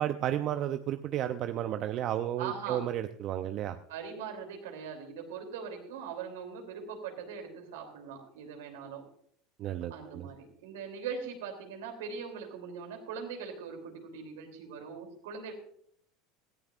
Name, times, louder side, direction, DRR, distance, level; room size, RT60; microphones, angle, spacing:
voice 1, 0.0-3.8 9.6-10.3, right 11 dB, 50° right, 9 dB, 0.6 m, -32 dB
voice 2, 2.4-2.8 3.9-9.0 9.9-15.5, right 6 dB, 80° right, 4 dB, 3.1 m, -41 dB
17.5 x 14.0 x 2.5 m, 0.65 s
hypercardioid pair, 95°, 0 cm